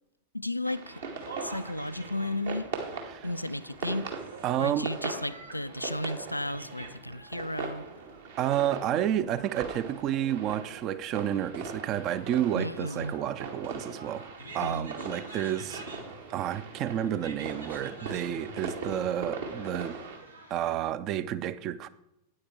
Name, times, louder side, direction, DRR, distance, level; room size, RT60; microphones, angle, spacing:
voice 1, 0.3-1.0 1.4-2.7 3.2-4.2 4.6-7.9 12.5-13.2 14.6-14.9, left 1 dB, 85° left, 0.3 m, -34 dB
sound 1, 0.7-20.2, right 4 dB, 65° right, 1.8 m, -40 dB
sound 2, 0.8-20.7, right 2 dB, 80° right, 1.6 m, -49 dB
voice 2, 4.4-4.9 8.4-15.8 16.3-20.0 20.5-21.9, right 11 dB, 35° right, 0.5 m, -30 dB
9.4 x 8.7 x 4.5 m
figure-of-eight pair, 90°, 0 cm